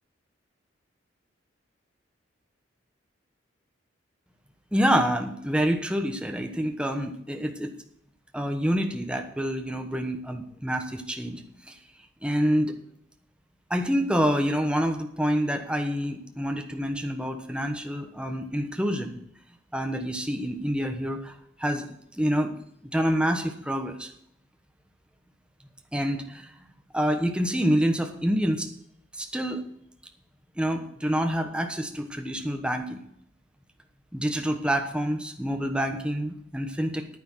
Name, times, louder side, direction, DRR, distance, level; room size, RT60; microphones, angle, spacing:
voice 1, 4.7-7.7 8.3-11.4 11.7-11.8 12.2-12.7 13.7-19.2 19.7-22.5 22.9-24.1 25.9-26.5 26.9-28.7 29.2-29.6 30.6-33.0 34.1-37.2, equal, 5° right, 5 dB, 1.2 m, -27 dB
9.7 x 9.5 x 6.3 m, 0.72 s
head